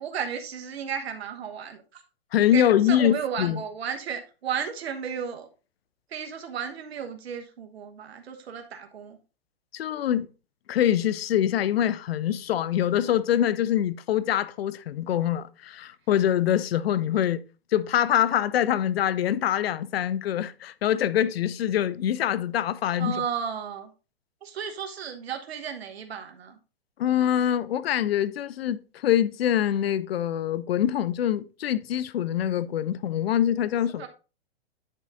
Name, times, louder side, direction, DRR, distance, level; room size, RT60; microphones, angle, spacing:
voice 1, 0.0-2.0 2.5-5.5 6.1-9.2 23.0-23.9 24.4-26.6 34.0-34.1, right 7 dB, 80° right, 1.4 m, -34 dB
voice 2, 2.3-3.6 9.7-10.3 10.7-17.4 17.7-23.2 27.0-34.1, left 10 dB, 75° left, 0.7 m, -24 dB
10.0 x 4.1 x 3.7 m
hypercardioid pair, 140°, 31 cm